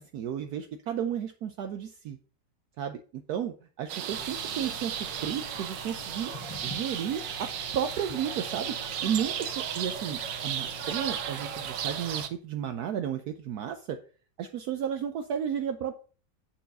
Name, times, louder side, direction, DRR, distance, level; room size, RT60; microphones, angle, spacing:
voice 1, 0.1-2.2 2.8-6.3 6.6-8.8 9.0-14.0 14.4-15.9, right 9 dB, 70° right, 7 dB, 1.1 m, -33 dB
sound 1, 3.9-12.3, right 9 dB, 85° right, 1.5 m, -35 dB
sound 2, 4.1-12.3, left 3 dB, 15° left, 1.3 m, -46 dB
9.2 x 4.6 x 5.4 m, 0.39 s
omnidirectional pair, 1.9 m